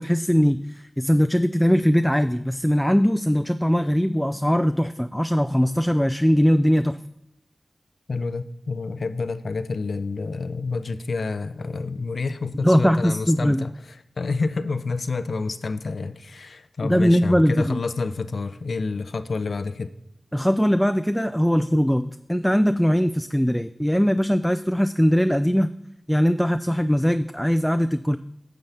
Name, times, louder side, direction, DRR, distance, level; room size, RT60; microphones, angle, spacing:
voice 1, 0.0-7.0 12.6-13.6 16.8-17.8 20.3-25.7 26.1-28.2, equal, 5° left, 10 dB, 0.3 m, -20 dB
voice 2, 8.1-19.9, left 4 dB, 80° left, 12 dB, 0.4 m, -29 dB
9.4 x 6.9 x 3.4 m, 0.82 s
cardioid pair, 40°, 0 cm